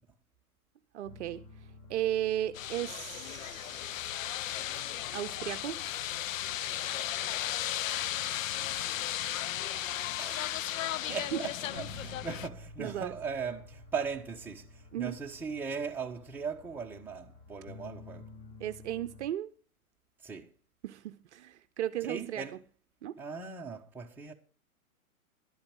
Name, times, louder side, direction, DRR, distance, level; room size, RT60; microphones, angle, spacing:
voice 1, 0.9-1.4 1.9-4.1 5.1-5.9 11.1-11.4 12.8-13.1 14.9-15.2 18.6-19.5 20.8-22.5 23.0-23.2, right 12 dB, 50° right, 0.7 m, -35 dB
sound 1, 1.0-19.3, left 2 dB, 45° left, 4.1 m, -53 dB
sound 2, 2.5-12.5, left 12 dB, 65° left, 0.6 m, -35 dB
voice 2, 8.2-8.7 10.2-18.3 20.2-20.5 22.0-22.6 23.2-24.3, right 5 dB, 5° right, 1.2 m, -39 dB
12.0 x 8.7 x 6.1 m
hypercardioid pair, 130°, 43 cm